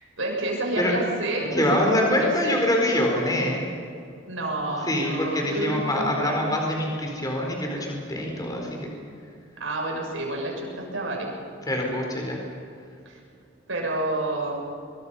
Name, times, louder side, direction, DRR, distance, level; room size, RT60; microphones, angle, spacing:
voice 1, 0.2-2.6 4.3-6.6 9.6-11.3 13.1-13.2 13.7-14.6, right 2 dB, 75° right, -1 dB, 6.9 m, -29 dB
voice 2, 1.5-3.6 4.9-8.9 11.7-12.4, left 1 dB, 20° left, 0 dB, 4.4 m, -24 dB
24.5 x 23.5 x 5.7 m, 2.5 s
head